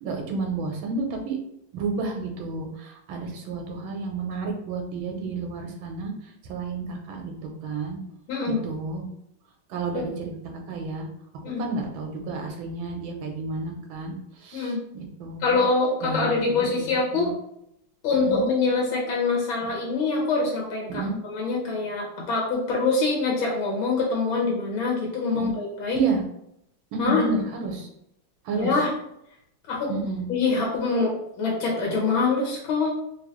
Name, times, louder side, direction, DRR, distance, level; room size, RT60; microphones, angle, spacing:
voice 1, 0.0-1.4 1.7-6.1 6.5-8.0 8.6-9.1 9.7-11.1 11.5-15.6 16.0-17.3 18.2-18.4 20.9-21.1 25.3-25.5 25.9-26.2 26.9-27.9 28.4-28.8 29.9-30.2, right 3 dB, 75° right, 3 dB, 1.5 m, -31 dB
voice 2, 8.3-8.6 9.9-10.1 11.4-11.6 14.5-14.8 15.4-17.3 18.0-26.0 27.0-27.3 28.6-28.9 29.7-29.9 30.3-32.9, left 3 dB, 75° left, -3 dB, 1.6 m, -24 dB
3.5 x 2.9 x 3.0 m, 0.76 s
omnidirectional pair, 2.3 m